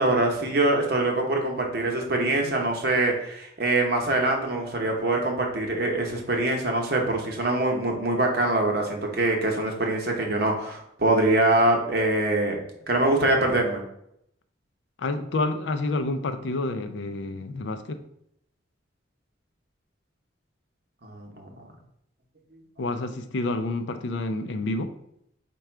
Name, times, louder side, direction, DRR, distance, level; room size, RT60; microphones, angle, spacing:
voice 1, 0.0-12.6 12.9-13.8 21.0-21.5, right 2 dB, 50° right, 0.8 m, -24 dB
voice 2, 15.0-18.0 22.8-24.9, left 2 dB, 65° left, 0.4 m, -29 dB
4.8 x 2.3 x 4.4 m
head